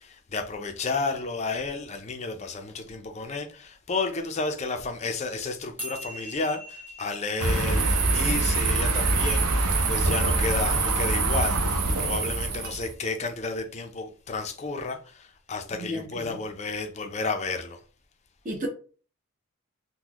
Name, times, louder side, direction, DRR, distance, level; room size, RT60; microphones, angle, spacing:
voice 1, 0.0-17.8, left 3 dB, 30° left, 0.4 m, -32 dB
sound 1, 5.8-12.4, equal, 10° right, 0.8 m, -44 dB
sound 2, 7.4-12.9, right 3 dB, 85° right, 0.7 m, -24 dB
voice 2, 15.7-16.3 18.4-18.7, equal, 35° right, 0.7 m, -33 dB
3.8 x 2.1 x 2.9 m
head